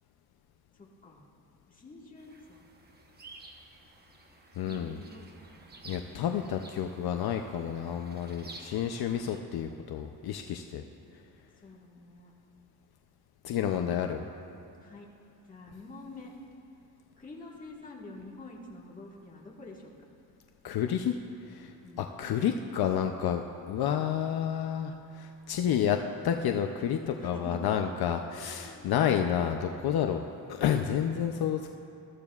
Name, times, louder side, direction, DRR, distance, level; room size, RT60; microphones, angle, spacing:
voice 1, 0.7-1.2 1.7-2.6 4.5-5.7 11.5-12.3 13.7-14.4 14.8-15.1 15.4-16.3 17.2-19.9 21.8-22.2 23.9-24.1 27.2-27.9 28.4-28.9, left 2 dB, 20° left, -3 dB, 1.7 m, -48 dB
sound 1, 2.2-9.4, right 3 dB, 25° right, 0.9 m, -52 dB
voice 2, 4.6-5.0 5.8-10.8 13.4-14.2 20.6-21.2 21.5-21.7 22.0-26.0 26.2-30.2 30.5-31.7, left 9 dB, 65° left, 5 dB, 0.6 m, -30 dB
21.0 x 14.0 x 2.4 m, 2.8 s
cardioid pair, 145°, 40 cm